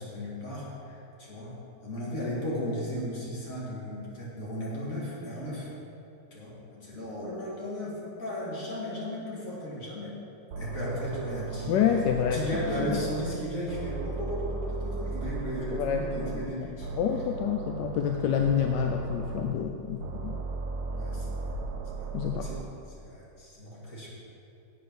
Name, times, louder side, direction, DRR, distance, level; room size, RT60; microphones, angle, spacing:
voice 1, 0.0-5.7 6.3-10.1 10.6-11.8 12.2-16.9 20.9-21.6 22.4-22.6 22.9-24.1, equal, 50° left, -6 dB, 2.7 m, -35 dB
sound 1, 10.5-13.4 13.7-16.5 16.8-19.5 20.0-22.6, right 4 dB, 70° right, 1.2 m, -36 dB
voice 2, 11.7-12.4 12.8-13.0 15.7-16.4 17.0-20.4 22.1-22.5, left 8 dB, 85° left, 4 dB, 1.2 m, -28 dB
8.4 x 6.8 x 6.1 m, 2.7 s
omnidirectional pair, 1.9 m